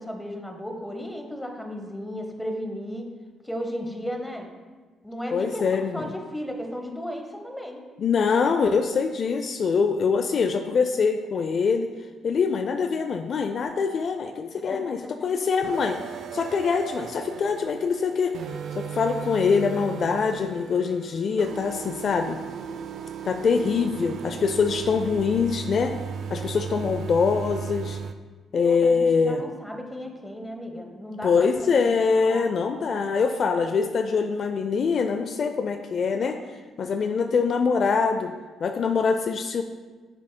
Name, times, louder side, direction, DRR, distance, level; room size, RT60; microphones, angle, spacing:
voice 1, 0.0-3.1 3.4-4.5 5.0-7.8 14.7-15.1 26.3-26.7 28.5-32.5, equal, 5° left, 3 dB, 0.9 m, -35 dB
voice 2, 5.3-6.0 8.0-11.9 12.2-16.0 16.3-18.4 18.7-22.4 23.2-26.0 26.3-28.0 28.5-29.4 31.2-36.4 36.8-38.3 38.6-39.6, left 5 dB, 55° left, 7 dB, 0.3 m, -24 dB
sound 1, 15.6-28.1, right 7 dB, 70° right, 0.3 m, -36 dB
8.2 x 6.1 x 2.2 m, 1.4 s
cardioid pair, 90°, 0 cm